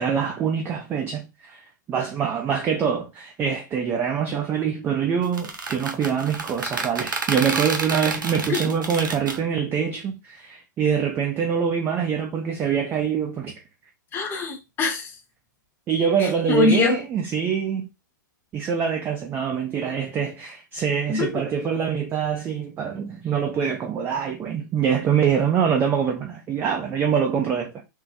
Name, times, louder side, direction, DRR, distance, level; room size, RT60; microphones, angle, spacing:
voice 1, 0.0-1.6 1.9-13.5 15.9-17.9 18.5-27.8, right 7 dB, 20° right, 0.4 m, -24 dB
sound 1, 5.2-9.4, right 3 dB, 80° right, 0.6 m, -29 dB
voice 2, 14.1-15.1 16.2-17.0 21.1-21.3, left 3 dB, 20° left, 0.8 m, -23 dB
3.7 x 2.0 x 2.6 m
figure-of-eight pair, 115°, 11 cm